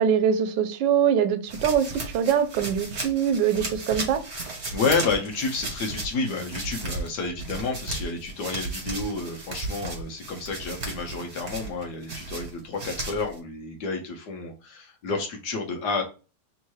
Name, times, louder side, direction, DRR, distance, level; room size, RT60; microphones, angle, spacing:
voice 1, 0.0-1.9 2.1-4.2, right 8 dB, 80° right, 1.3 m, -23 dB
sound 1, 1.5-13.4, right 2 dB, 40° right, 1.7 m, -35 dB
voice 2, 4.7-16.0, left 4 dB, 70° left, 1.4 m, -30 dB
3.6 x 2.9 x 4.6 m
omnidirectional pair, 1.9 m